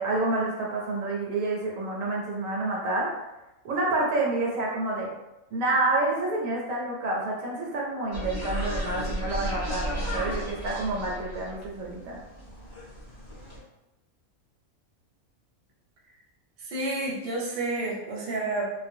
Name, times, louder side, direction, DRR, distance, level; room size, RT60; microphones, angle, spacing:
voice 1, 0.0-3.1 3.6-5.1 5.5-12.2, right 2 dB, 75° right, -2 dB, 1.0 m, -28 dB
sound 1, 8.1-13.6, equal, 30° left, 0.5 m, -34 dB
voice 2, 16.6-18.7, right 2 dB, 50° right, -4 dB, 0.7 m, -30 dB
2.4 x 2.2 x 2.6 m, 0.98 s
omnidirectional pair, 1.5 m